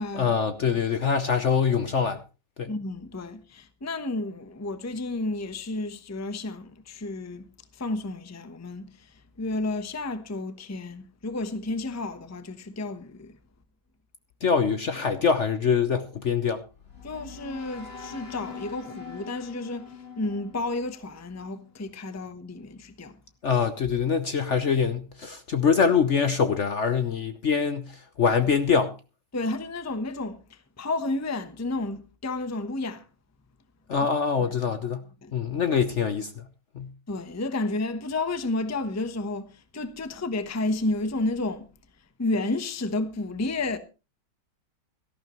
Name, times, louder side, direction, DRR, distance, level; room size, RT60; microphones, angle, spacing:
voice 1, 0.1-2.2 2.6-2.7 14.4-16.6 23.4-28.9 33.9-35.0 35.3-36.4 36.7-36.9, left 6 dB, 50° left, 1.0 m, -24 dB
voice 2, 2.7-7.5 7.7-9.1 9.4-13.4 17.0-23.2 29.3-33.1 35.2-35.3 37.1-41.7 42.2-43.8, left 2 dB, 15° left, 0.7 m, -31 dB
sound 1, 16.6-21.7, left 5 dB, 35° left, 2.1 m, -44 dB
17.5 x 13.5 x 3.1 m
omnidirectional pair, 1.9 m